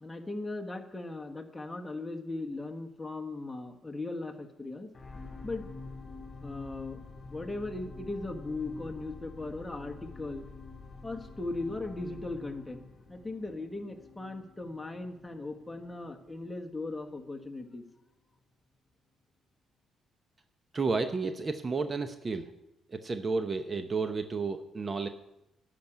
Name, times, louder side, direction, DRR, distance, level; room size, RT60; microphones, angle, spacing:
voice 1, 0.0-4.9 5.4-5.7 6.4-7.0 7.3-10.4 11.0-17.8, left 2 dB, 10° left, 2 dB, 1.4 m, -38 dB
sound 1, 4.9-17.3 17.9-18.0, left 3 dB, 35° left, 2.8 m, -48 dB
voice 2, 20.7-22.5 22.9-25.1, right 4 dB, 35° right, 8 dB, 0.7 m, -32 dB
10.5 x 6.0 x 8.7 m, 0.90 s
cardioid pair, 90°, 0 cm